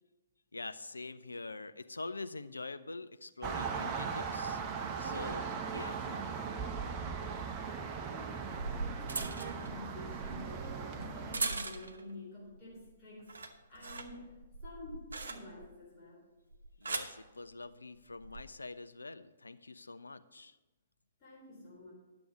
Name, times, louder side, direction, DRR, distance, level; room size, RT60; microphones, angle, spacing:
voice 1, 0.5-4.6 5.0-6.0 16.8-20.5, left 3 dB, 80° left, 11 dB, 0.5 m, -45 dB
sound 1, 3.4-11.4, right 6 dB, 25° right, 1.0 m, -38 dB
voice 2, 7.9-14.4 14.6-16.3 21.2-21.9, left 2 dB, 30° left, -6 dB, 3.8 m, -49 dB
sound 2, 8.2-12.1 12.5-12.9 13.2-15.8 16.5-17.2 18.1-18.4, right 3 dB, 70° right, 1.0 m, -40 dB
10.5 x 7.1 x 5.8 m, 1.1 s
figure-of-eight pair, 120°, 0 cm